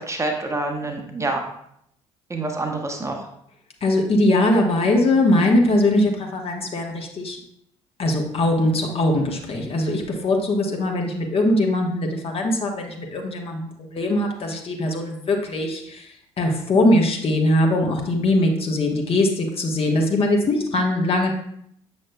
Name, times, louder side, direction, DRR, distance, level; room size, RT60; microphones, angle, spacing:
voice 1, 0.0-1.4 2.3-3.2, right 2 dB, 15° right, 2 dB, 1.0 m, -27 dB
voice 2, 3.8-7.4 8.0-16.1 16.4-21.3, left 1 dB, 35° left, 2 dB, 1.2 m, -21 dB
7.4 x 6.3 x 2.2 m, 0.71 s
figure-of-eight pair, 50°, 17 cm